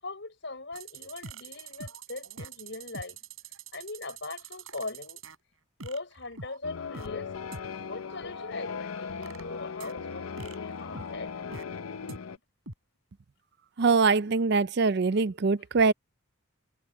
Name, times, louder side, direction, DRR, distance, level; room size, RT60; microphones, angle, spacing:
voice 1, 0.0-3.2 3.7-5.2 5.8-7.3 7.9-11.3, left 3 dB, 60° left, 5.5 m, -40 dB
sound 1, 0.7-5.4 5.8-7.1 7.5-7.6 8.1-8.2 8.7-9.9 10.4-11.6 12.1-12.2 12.7-12.8, right 4 dB, 80° right, 4.8 m, -44 dB
sound 2, 6.6-12.4, left 5 dB, 85° left, 0.6 m, -38 dB
voice 2, 13.8-15.9, right 4 dB, 55° right, 0.5 m, -23 dB
head